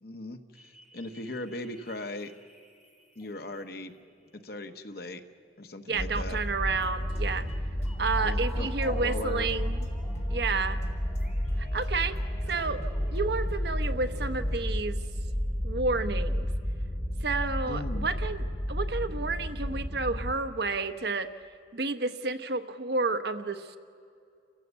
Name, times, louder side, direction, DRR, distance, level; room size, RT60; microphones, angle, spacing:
voice 1, 0.0-2.3 3.2-3.9 4.3-5.2 5.6-6.4 8.2-9.5 17.7-18.1, left 1 dB, 60° left, 7 dB, 1.2 m, -38 dB
sound 1, 0.5-13.9, equal, ahead, 3.6 m, -53 dB
sound 2, 5.9-14.6, equal, 40° left, 3.6 m, -45 dB
voice 2, 5.9-7.4 8.0-9.8 10.3-10.8 11.6-12.2 12.5-12.8 13.1-15.0 15.6-16.5 17.2-21.3 21.7-23.8, right 3 dB, 65° right, 9 dB, 1.0 m, -30 dB
sound 3, 6.0-20.3, equal, 20° left, 2.3 m, -31 dB
29.0 x 15.0 x 8.2 m, 2.4 s
head